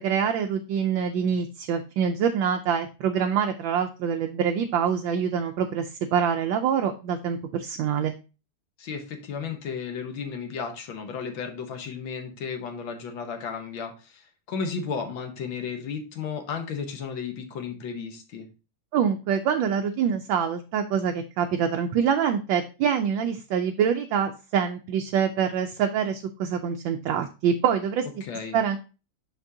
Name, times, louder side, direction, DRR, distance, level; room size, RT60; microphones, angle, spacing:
voice 1, 0.0-8.1 18.9-28.0 28.5-28.8, right 7 dB, 75° right, 5 dB, 1.2 m, -25 dB
voice 2, 8.8-18.5 28.2-28.6, left 6 dB, 65° left, 5 dB, 1.7 m, -34 dB
6.1 x 5.9 x 2.7 m, 0.32 s
omnidirectional pair, 2.4 m